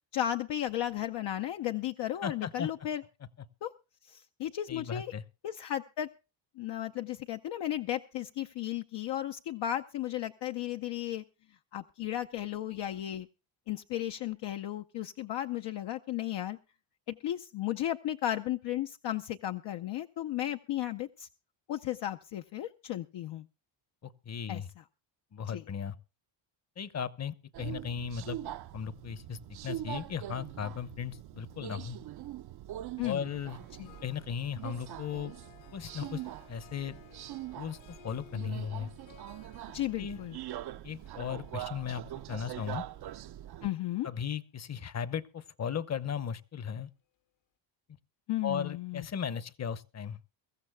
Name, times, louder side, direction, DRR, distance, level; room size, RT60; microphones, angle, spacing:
voice 1, 0.1-3.0 3.6-3.7 4.0-5.1 5.4-6.1 6.6-11.2 11.7-13.3 13.7-16.6 17.1-21.3 21.7-23.5 24.5-24.8 25.5-25.6 33.0-33.2 33.8-33.9 39.7-40.4 43.6-44.1 48.3-49.1, left 12 dB, 60° left, 0.7 m, -34 dB
voice 2, 2.2-2.7 4.7-5.2 24.0-24.7 25.3-26.0 26.8-28.4 28.7-32.0 33.0-33.6 34.0-35.3 35.7-36.2 36.5-37.0 37.6-38.9 40.0-40.2 40.8-42.0 42.3-42.8 44.0-46.9 48.4-50.2, left 7 dB, 35° left, 0.9 m, -36 dB
Subway metro underground, 27.5-43.7, right 13 dB, 55° right, 0.6 m, -43 dB
Harp, 33.1-44.5, left 8 dB, 80° left, 2.4 m, -59 dB
23.0 x 14.0 x 2.2 m
cardioid pair, 115°, 47 cm